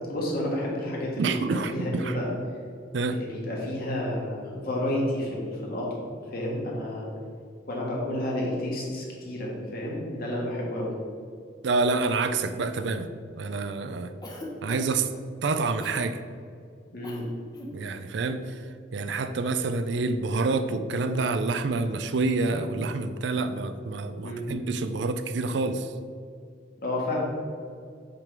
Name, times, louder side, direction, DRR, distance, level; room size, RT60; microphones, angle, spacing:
voice 1, 0.1-2.3 3.1-6.0 6.3-7.1 7.7-10.9 16.9-17.2 24.2-24.4 26.8-27.2, left 1 dB, 55° left, -3 dB, 1.7 m, -30 dB
voice 2, 1.2-2.2 2.9-3.2 11.6-13.1 13.4-14.1 14.6-15.1 15.4-16.2 17.7-18.6 18.9-25.9, right 3 dB, 65° right, 10 dB, 0.4 m, -27 dB
Cough, 14.2-15.1 15.8-16.1 17.0-17.3 17.5-17.8, left 1 dB, 20° left, 1.0 m, -39 dB
7.6 x 3.8 x 4.6 m, 2.3 s
head